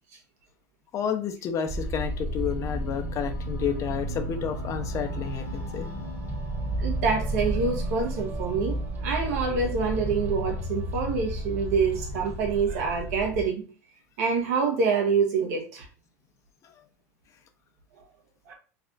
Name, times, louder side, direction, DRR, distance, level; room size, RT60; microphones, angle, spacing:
voice 1, 0.9-5.9, left 8 dB, 40° left, 0.7 m, -30 dB
sound 1, 1.7-13.4, right 1 dB, 25° right, 1.2 m, -32 dB
voice 2, 6.8-13.6 14.2-15.8 18.5-18.6, right 5 dB, 75° right, 1.2 m, -26 dB
3.3 x 2.3 x 3.9 m
hypercardioid pair, 105°, 8 cm